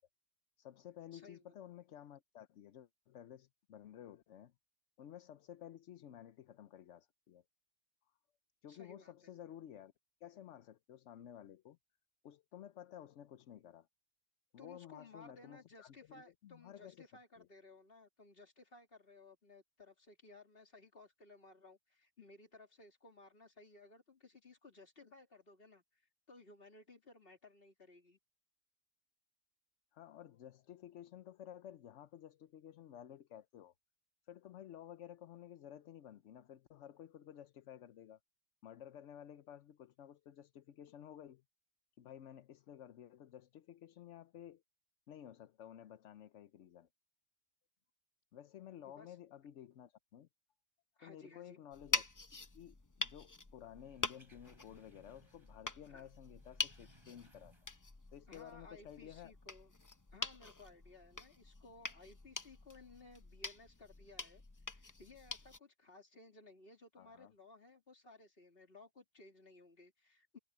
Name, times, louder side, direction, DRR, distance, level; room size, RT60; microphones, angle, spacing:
voice 1, 0.6-4.5 5.0-7.4 8.6-9.9 10.2-11.8 12.2-13.9 14.5-17.1 17.4-17.5 29.9-33.7 34.3-38.2 38.6-41.4 42.0-44.6 45.1-46.9 48.3-50.3 51.0-52.0 52.5-57.5 58.1-59.3 67.0-67.3, left 10 dB, 85° left, 1.0 m, -54 dB
voice 2, 1.1-1.5 8.7-9.3 14.6-26.0 26.3-28.2 48.8-49.2 51.0-51.6 55.9-56.1 58.3-59.7 60.1-64.4 64.7-70.4, left 3 dB, 55° left, 3.0 m, -59 dB
sound 1, 51.7-65.6, left 3 dB, 20° left, 0.7 m, -45 dB
sound 2, 53.8-55.7 56.0-58.0 58.3-58.5, right 1 dB, 25° right, 4.4 m, -68 dB
omnidirectional pair, 1.2 m